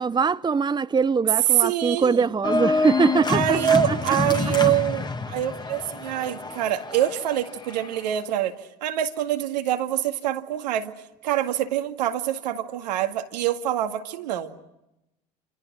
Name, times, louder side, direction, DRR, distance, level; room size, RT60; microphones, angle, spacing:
voice 1, 0.0-3.6, right 5 dB, 20° right, 0.9 m, -22 dB
voice 2, 1.6-2.2 3.3-8.5 8.8-10.9 11.2-14.5, right 11 dB, 85° right, 2.2 m, -25 dB
Organ, 2.4-8.1, left 3 dB, 20° left, 2.0 m, -27 dB
28.5 x 28.0 x 6.2 m
hypercardioid pair, 65°, 21 cm